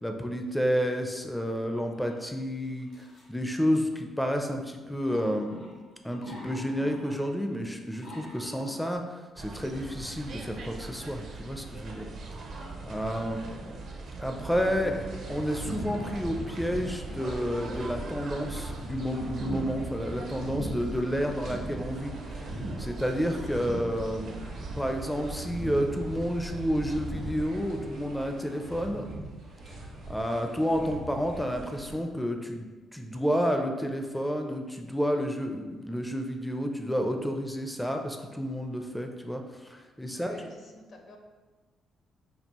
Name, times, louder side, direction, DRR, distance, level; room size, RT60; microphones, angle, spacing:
voice 1, 0.0-12.1 12.8-13.4 14.2-15.0 15.3-24.4 24.7-29.3 30.1-40.5, equal, 5° left, 4 dB, 0.4 m, -30 dB
sound 1, 1.9-2.1 2.8-3.3 3.7-3.9 5.1-7.5 7.9-8.9, equal, 85° left, 1.3 m, -45 dB
sound 2, 9.4-27.6, right 3 dB, 65° right, 0.5 m, -41 dB
sound 3, 14.5-31.9, right 1 dB, 85° right, 1.1 m, -41 dB
voice 2, 40.1-41.2, left 2 dB, 60° left, 2 dB, 0.7 m, -50 dB
5.2 x 2.3 x 2.9 m, 1.3 s
cardioid pair, 90°, 0 cm